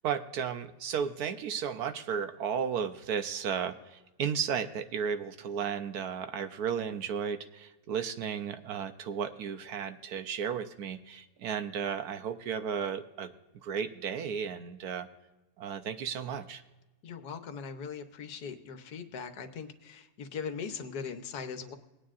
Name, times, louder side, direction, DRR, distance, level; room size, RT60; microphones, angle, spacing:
voice 1, 0.0-13.3 13.6-15.1 15.6-16.6, right 7 dB, 70° right, 9 dB, 1.1 m, -34 dB
voice 2, 17.0-21.7, left 6 dB, 70° left, 7 dB, 1.4 m, -40 dB
19.5 x 9.5 x 2.5 m, 1.0 s
omnidirectional pair, 1.8 m